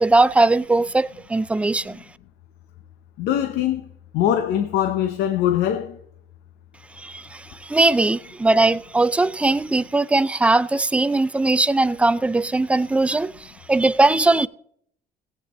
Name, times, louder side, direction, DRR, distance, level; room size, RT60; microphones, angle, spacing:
voice 1, 0.0-2.0 7.0-14.5, right 2 dB, 5° right, 0.3 m, -20 dB
voice 2, 3.2-3.8 4.1-6.0, left 10 dB, 80° left, 0.7 m, -22 dB
17.5 x 8.2 x 3.0 m
cardioid pair, 110°, 17 cm